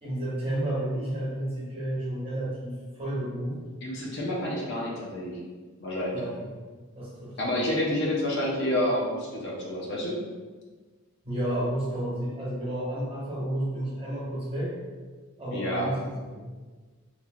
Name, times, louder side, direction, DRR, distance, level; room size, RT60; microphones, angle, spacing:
voice 1, 0.0-3.6 6.1-6.4 6.9-7.4 11.2-14.7 15.4-16.4, right 1 dB, 25° right, -9 dB, 1.1 m, -31 dB
voice 2, 3.8-5.4 5.8-6.2 7.4-10.2 15.5-15.9, left 1 dB, 55° left, -4 dB, 0.5 m, -29 dB
3.1 x 2.5 x 2.4 m, 1.4 s
head